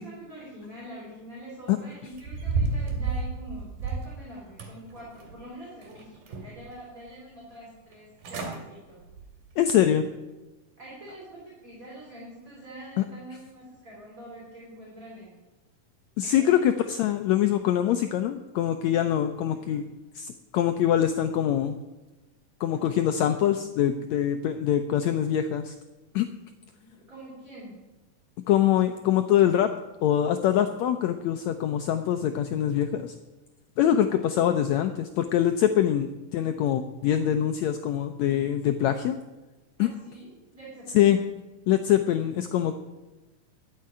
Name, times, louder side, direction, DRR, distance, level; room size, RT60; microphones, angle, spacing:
voice 1, 0.0-9.0 10.8-15.4 16.2-16.7 19.5-19.9 26.6-27.9 39.8-41.1, right 1 dB, 25° right, -5 dB, 3.5 m, -45 dB
sound 1, 2.1-4.2 4.6-5.4 5.8-6.7 7.1-7.2 7.9-8.0 8.2-8.6 9.0-9.3 9.8-9.9, right 4 dB, 85° right, 3.9 m, -31 dB
voice 2, 9.6-10.1 13.0-13.1 16.2-19.8 20.1-21.8 22.6-25.7 26.1-26.3 28.5-29.7 30.0-33.2 33.8-39.2 39.8-39.9 40.9-41.2 41.7-42.8, left 10 dB, 80° left, 7 dB, 1.6 m, -24 dB
12.5 x 6.7 x 9.7 m, 1.1 s
omnidirectional pair, 3.9 m